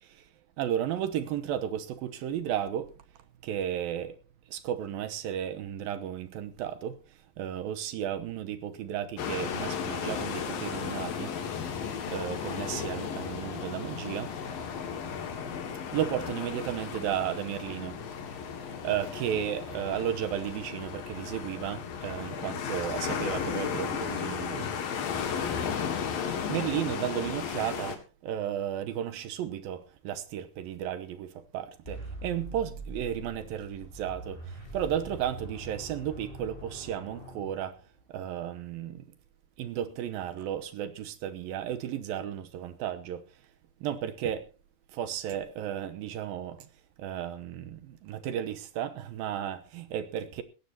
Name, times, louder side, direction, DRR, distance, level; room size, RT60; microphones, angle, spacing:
voice 1, 0.6-2.9 3.4-4.2 4.5-7.0 7.4-11.3 11.7-11.8 12.1-14.3 15.9-18.0 18.8-24.7 26.5-37.8 38.1-39.0 39.6-43.2 43.8-44.5 44.9-46.7 47.0-50.4, right 10 dB, 75° right, 2.3 m, -34 dB
sound 1, 9.2-28.0, left 7 dB, 60° left, 3.4 m, -35 dB
sound 2, 31.8-38.0, right 1 dB, 10° left, 6.2 m, -43 dB
19.0 x 15.0 x 2.9 m
omnidirectional pair, 5.1 m